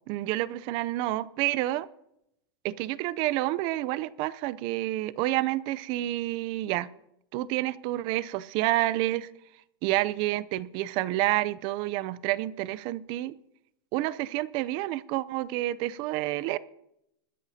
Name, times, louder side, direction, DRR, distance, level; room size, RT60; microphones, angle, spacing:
voice 1, 0.1-1.9 2.6-6.9 7.3-9.3 9.8-13.3 13.9-16.6, right 16 dB, 40° right, 19 dB, 0.5 m, -29 dB
21.5 x 10.5 x 2.8 m, 0.79 s
supercardioid pair, 145°, 13 cm